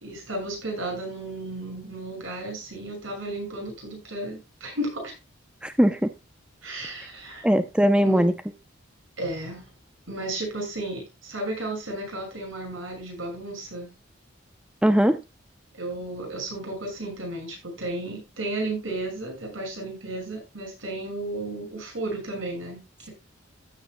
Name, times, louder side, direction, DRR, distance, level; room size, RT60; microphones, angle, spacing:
voice 1, 0.0-5.1 6.6-7.5 8.0-8.3 9.2-9.6 10.1-13.9 15.7-23.1, right 2 dB, 70° right, 6.6 m, -33 dB
voice 2, 5.6-6.1 7.4-8.3 14.8-15.2, equal, 5° right, 0.5 m, -20 dB
15.0 x 8.7 x 2.2 m
head